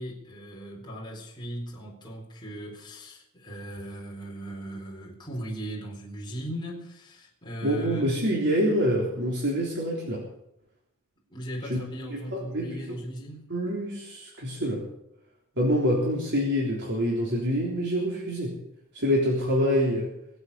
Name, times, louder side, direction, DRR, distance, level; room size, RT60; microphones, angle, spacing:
voice 1, 0.0-8.0 11.3-13.5, right 1 dB, 20° left, 4.2 m, -38 dB
voice 2, 7.6-10.2 11.7-11.8 12.1-13.0 13.5-14.8 15.6-18.5 18.9-20.1, equal, 55° right, 3.7 m, -26 dB
24.0 x 8.1 x 6.9 m
head